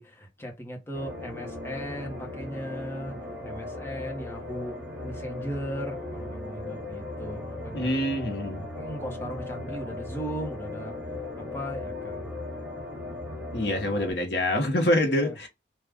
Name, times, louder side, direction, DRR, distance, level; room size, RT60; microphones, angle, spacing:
voice 1, 0.0-3.2 3.4-4.8 5.0-7.9 8.8-10.9 11.4-12.3 15.0-15.4, equal, 15° left, 0.9 m, -37 dB
sound 1, 0.9-14.1, left 2 dB, 15° right, 2.3 m, -37 dB
voice 2, 7.7-8.7 13.5-15.5, left 1 dB, 75° left, 1.1 m, -26 dB
3.5 x 2.3 x 3.5 m
head